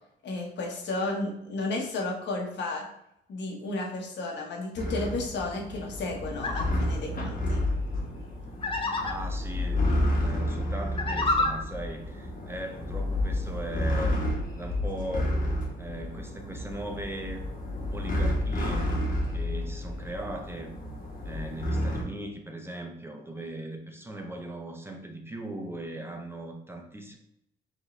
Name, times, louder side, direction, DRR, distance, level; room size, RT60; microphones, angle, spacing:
voice 1, 0.2-2.9 3.3-7.7, left 2 dB, 65° left, 0 dB, 1.1 m, -33 dB
sound 1, 4.8-22.0, left 1 dB, 45° left, 1.2 m, -30 dB
sound 2, 6.3-6.6 8.6-9.1 10.9-11.5, left 2 dB, 25° left, 0.6 m, -27 dB
voice 2, 9.0-14.2 14.5-15.5 15.8-17.4 17.9-19.0 19.3-20.8 21.2-27.2, right 1 dB, 10° right, 3 dB, 0.6 m, -38 dB
4.9 x 2.7 x 3.2 m, 0.78 s
cardioid pair, 90°, 20 cm